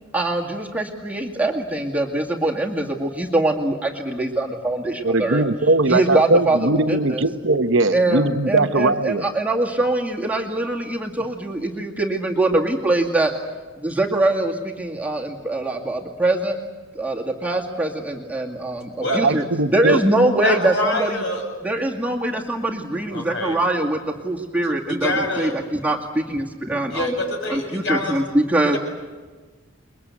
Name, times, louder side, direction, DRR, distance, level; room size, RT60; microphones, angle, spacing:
voice 1, 0.1-5.4 5.9-7.2 7.9-13.3 13.8-16.6 16.9-19.4 19.7-21.2 21.6-27.1 27.5-28.8, right 2 dB, 5° right, -1 dB, 2.3 m, -23 dB
voice 2, 5.0-9.3 19.1-20.0, right 2 dB, 60° right, 8 dB, 1.1 m, -20 dB
voice 3, 20.4-21.5 23.1-23.6 24.6-25.5 26.9-28.2 28.7-28.8, left 1 dB, 60° left, 4 dB, 7.1 m, -25 dB
29.5 x 22.5 x 8.4 m, 1.3 s
head